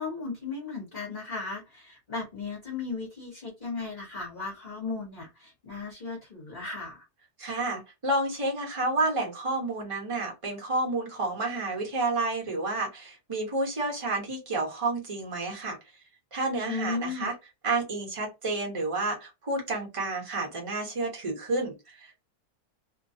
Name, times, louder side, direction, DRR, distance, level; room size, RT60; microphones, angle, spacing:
voice 1, 0.0-7.0 16.6-17.3, left 4 dB, 35° left, -3 dB, 1.1 m, -36 dB
voice 2, 7.4-15.8 16.3-17.3 17.6-22.2, right 2 dB, 25° right, -1 dB, 1.0 m, -30 dB
2.8 x 2.3 x 2.7 m, 0.23 s
omnidirectional pair, 1.7 m